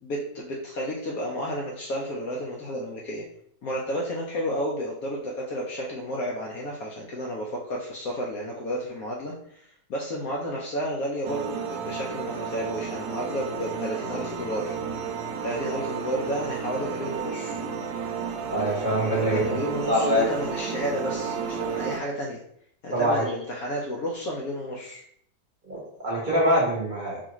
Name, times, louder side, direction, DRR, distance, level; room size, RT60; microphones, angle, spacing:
voice 1, 0.0-3.2 3.6-14.7 15.4-17.6 19.1-22.4 22.8-25.0, equal, 65° left, -2 dB, 0.9 m, -31 dB
sound 1, 11.2-22.0, right 6 dB, 80° right, 1.2 m, -32 dB
voice 2, 18.5-19.6 19.9-20.3 22.9-23.2 25.6-27.2, equal, 30° right, -6 dB, 1.1 m, -24 dB
4.7 x 2.5 x 2.9 m, 0.70 s
omnidirectional pair, 2.0 m